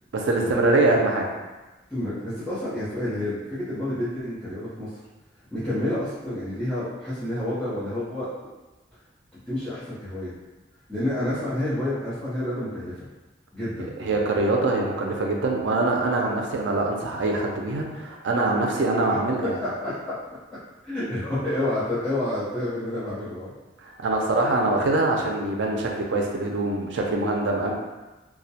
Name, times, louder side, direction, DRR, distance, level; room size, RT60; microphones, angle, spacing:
voice 1, 0.1-1.3 14.0-19.6 23.8-27.7, right 2 dB, 70° right, 0 dB, 0.4 m, -24 dB
voice 2, 1.9-4.9 5.5-8.3 9.5-10.3 10.9-13.1 13.5-14.2 19.1-20.1 20.8-23.5, left 1 dB, 5° left, -14 dB, 0.6 m, -29 dB
2.2 x 2.1 x 2.7 m, 1.1 s
head